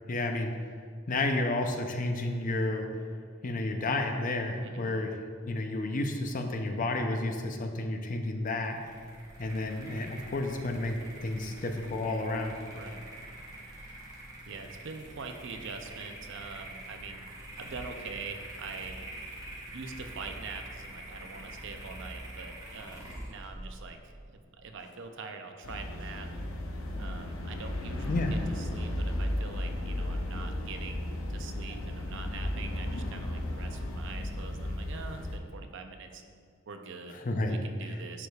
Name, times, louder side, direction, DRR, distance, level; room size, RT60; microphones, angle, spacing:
voice 1, 0.1-0.5 1.1-2.9 3.4-5.1 5.4-8.8 9.4-12.6 28.1-28.4 37.2-37.6, left 2 dB, 40° left, 4 dB, 0.5 m, -31 dB
voice 2, 4.6-5.0 12.7-13.0 14.5-17.2 17.6-19.0 19.7-26.3 27.0-36.2 36.7-38.3, right 4 dB, 60° right, 5 dB, 0.5 m, -44 dB
sound 1, 8.6-24.9, right 1 dB, 15° right, 1.0 m, -45 dB
sound 2, 25.6-35.4, left 1 dB, 70° left, 0.7 m, -34 dB
10.5 x 4.8 x 2.3 m, 2.1 s
head